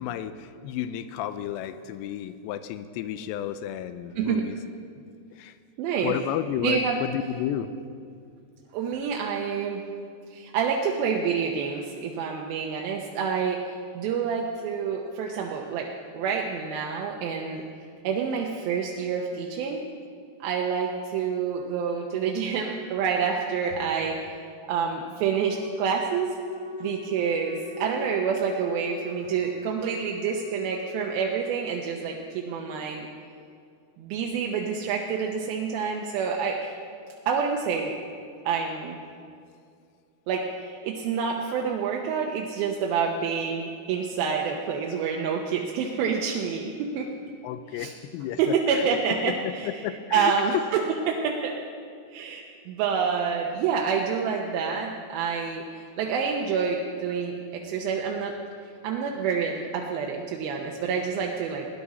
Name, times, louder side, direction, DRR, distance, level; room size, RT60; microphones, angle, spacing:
voice 1, 0.0-4.6 5.0-5.1 5.3-5.6 6.0-7.7 47.4-50.6, left 11 dB, 90° left, 12 dB, 2.7 m, -32 dB
voice 2, 5.8-6.1 6.6-7.0 8.7-9.8 10.3-15.9 16.1-17.6 18.0-19.8 20.4-24.2 24.7-26.3 26.8-33.1 34.0-36.7 37.3-38.0 38.5-39.0 40.3-47.1 47.8-47.9 48.4-49.7 50.1-50.8 51.1-51.5 52.1-55.6 56.0-58.3 58.8-61.7, right 6 dB, 75° right, 0 dB, 2.3 m, -28 dB
Wind instrument woodwind instrument, 25.5-31.5, left 1 dB, 70° left, 2.9 m, -39 dB
19.0 x 11.0 x 4.2 m, 2.3 s
omnidirectional pair, 4.8 m